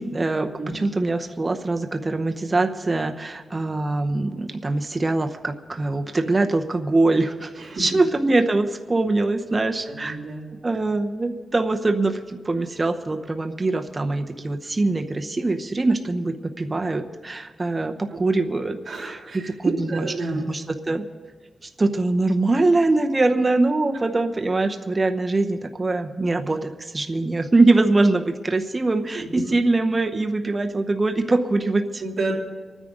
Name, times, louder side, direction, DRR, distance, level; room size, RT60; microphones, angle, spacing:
voice 1, 0.0-7.5 7.8-10.2 10.6-20.1 20.3-21.0 21.8-32.0, right 2 dB, 25° right, 5 dB, 0.9 m, -23 dB
voice 2, 9.9-10.5 18.1-18.2 18.8-20.5 32.0-32.3, right 3 dB, 50° right, -4 dB, 3.3 m, -29 dB
25.0 x 9.9 x 3.9 m, 1.4 s
wide cardioid pair, 110°, 0 cm